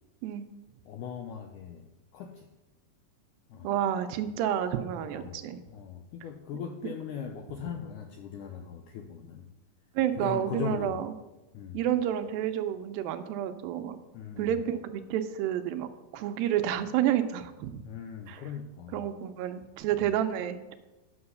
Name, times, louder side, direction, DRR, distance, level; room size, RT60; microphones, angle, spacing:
voice 1, 0.9-1.9 2.1-2.5 3.5-3.8 5.0-9.5 10.2-11.0 11.5-11.9 14.1-14.7 17.8-19.1, left 7 dB, 85° left, 4 dB, 1.8 m, -39 dB
voice 2, 3.6-5.6 10.0-11.1 11.7-14.0 14.4-15.9 16.1-17.8 18.3-18.4 18.9-20.8, right 10 dB, 80° right, 9 dB, 2.3 m, -30 dB
9.6 x 6.2 x 6.8 m, 1.0 s
omnidirectional pair, 4.4 m